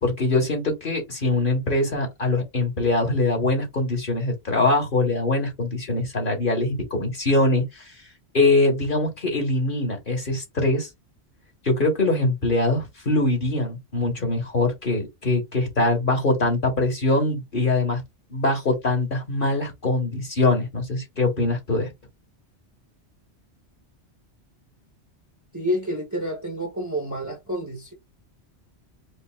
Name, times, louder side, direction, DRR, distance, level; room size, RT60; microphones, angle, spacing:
voice 1, 0.0-7.8 8.3-10.9 11.6-18.0 18.3-21.9, left 2 dB, 50° left, 1.5 m, -23 dB
voice 2, 25.5-27.9, equal, 15° right, 0.9 m, -29 dB
5.1 x 2.5 x 2.3 m
omnidirectional pair, 1.2 m